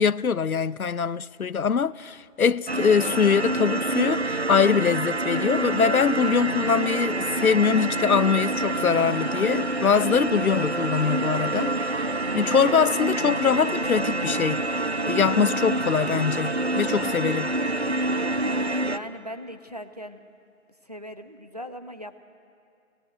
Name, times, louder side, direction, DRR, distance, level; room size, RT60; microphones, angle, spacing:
voice 1, 0.0-14.6 15.1-17.5, left 6 dB, 90° left, 0.7 m, -23 dB
sound 1, 2.7-19.0, right 2 dB, 50° right, 0.9 m, -27 dB
voice 2, 18.4-20.2 20.8-22.2, equal, 30° right, 1.0 m, -39 dB
28.0 x 18.0 x 9.3 m
figure-of-eight pair, 175°, 42 cm